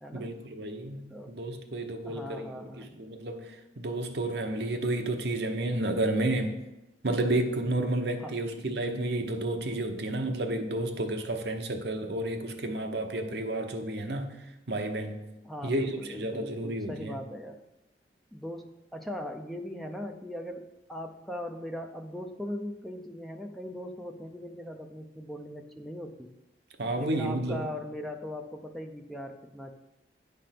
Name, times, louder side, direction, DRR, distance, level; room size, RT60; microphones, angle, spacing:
voice 1, 0.1-6.6 7.0-14.4 14.7-15.3 15.6-17.2 26.8-27.7, right 1 dB, 60° right, 5 dB, 0.8 m, -31 dB
voice 2, 2.0-3.0 8.2-8.3 15.4-17.6 18.3-26.3 26.9-29.7, equal, ahead, 3 dB, 0.5 m, -39 dB
9.5 x 3.4 x 5.8 m, 0.94 s
head